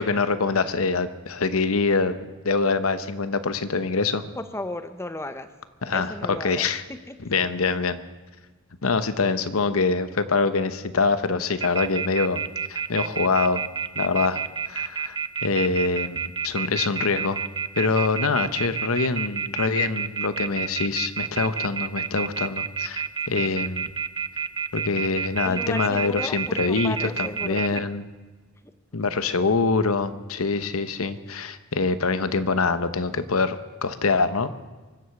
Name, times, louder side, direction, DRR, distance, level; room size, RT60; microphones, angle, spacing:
voice 1, 0.0-2.2 2.4-4.2 5.8-6.8 7.2-8.0 8.8-12.4 12.7-13.6 14.0-15.2 15.4-17.4 17.7-23.9 24.7-28.0 28.9-34.5, left 4 dB, 85° left, 12 dB, 1.0 m, -24 dB
voice 2, 4.4-5.5 5.9-7.2 23.3-23.4 25.4-27.8, left 1 dB, 10° left, 10 dB, 0.7 m, -35 dB
sound 1, 11.6-27.8, right 7 dB, 20° right, 0.4 m, -29 dB
24.0 x 8.0 x 7.1 m, 1.3 s
head